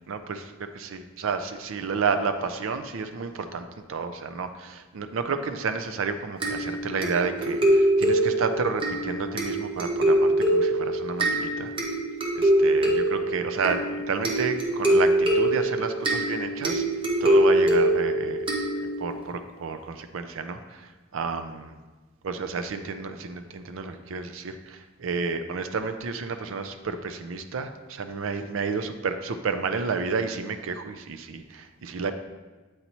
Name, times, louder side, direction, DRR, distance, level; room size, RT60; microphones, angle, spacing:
voice 1, 0.1-11.7 12.3-16.8 17.2-18.4 18.8-21.8 22.2-32.1, right 4 dB, 70° right, 8 dB, 0.4 m, -31 dB
sound 1, 6.4-19.2, right 1 dB, 25° right, 0.8 m, -24 dB
7.9 x 4.1 x 2.9 m, 1.3 s
head